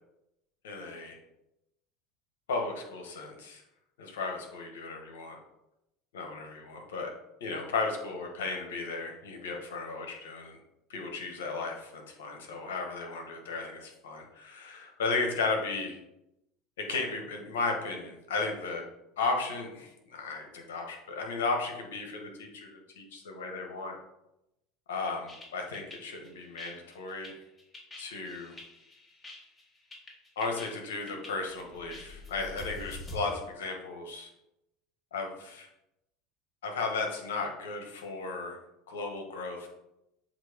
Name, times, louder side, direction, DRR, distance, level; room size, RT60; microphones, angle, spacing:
voice 1, 0.6-1.2 2.5-3.6 4.0-5.4 6.1-7.1 7.4-10.6 10.9-16.0 16.8-18.9 19.2-24.0 24.9-27.4 28.0-28.5 30.3-34.3 35.1-35.7 36.6-38.6 38.9-39.7, left 3 dB, 85° left, 3 dB, 1.5 m, -35 dB
sound 1, 25.3-33.2, left 2 dB, 20° left, 1.9 m, -47 dB
7.5 x 3.0 x 5.1 m, 0.88 s
hypercardioid pair, 95°, 0 cm